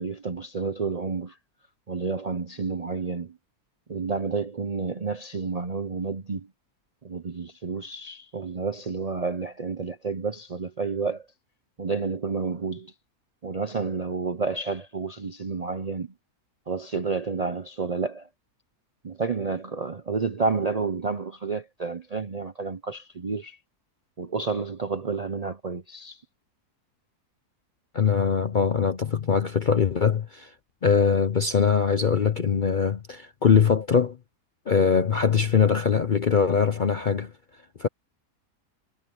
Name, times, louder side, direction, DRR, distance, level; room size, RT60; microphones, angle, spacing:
voice 1, 0.0-1.4 1.9-3.4 3.9-6.5 7.0-11.3 11.8-12.9 13.4-16.1 16.7-18.3 19.0-23.6 24.2-26.2, right 4 dB, 45° right, 0.5 m, -30 dB
voice 2, 27.9-30.5 30.8-34.2 34.7-37.3 37.8-37.9, left 6 dB, 50° left, 0.6 m, -22 dB
omnidirectional pair, 1.7 m